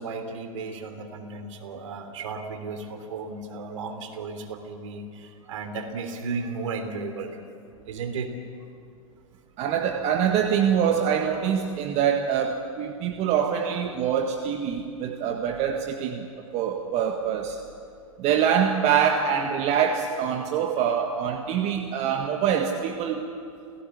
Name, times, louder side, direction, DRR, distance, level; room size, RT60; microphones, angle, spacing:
voice 1, 0.0-7.4 7.8-8.3, right 4 dB, 65° right, 7 dB, 3.4 m, -34 dB
voice 2, 9.6-16.3 16.5-17.6 18.2-23.3, right 8 dB, 35° right, 4 dB, 1.7 m, -24 dB
29.0 x 17.0 x 8.4 m, 2.4 s
hypercardioid pair, 110°, 18 cm